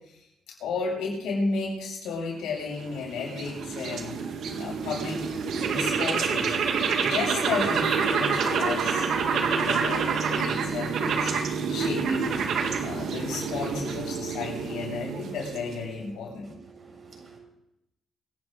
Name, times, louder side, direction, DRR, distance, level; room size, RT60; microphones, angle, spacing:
voice 1, 0.5-4.2 4.6-6.6 6.9-12.4 12.8-16.5, left 4 dB, 85° left, -2 dB, 7.7 m, -33 dB
sound 1, 2.6-16.0, right 5 dB, 70° right, 2.0 m, -28 dB
voice 2, 16.4-17.4, right 4 dB, 45° right, -1 dB, 7.4 m, -49 dB
25.5 x 11.0 x 4.1 m, 0.86 s
cardioid pair, 90°, 0 cm